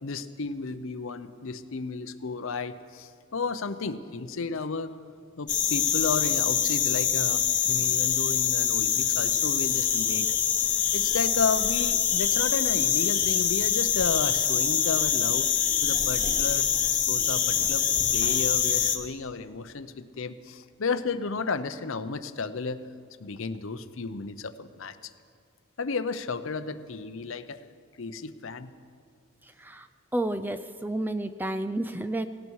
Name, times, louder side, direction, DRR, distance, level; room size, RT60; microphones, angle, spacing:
voice 1, 0.0-4.9 5.4-10.3 10.5-15.5 15.8-16.7 17.1-17.8 18.1-22.8 23.2-25.1 25.8-27.6 28.0-28.7, left 4 dB, 60° left, 12 dB, 0.7 m, -33 dB
sound 1, 5.5-19.0, left 9 dB, 35° left, 1.1 m, -25 dB
voice 2, 29.4-29.9 30.1-32.3, right 1 dB, 10° right, 10 dB, 0.4 m, -31 dB
18.0 x 17.0 x 4.7 m, 2.2 s
head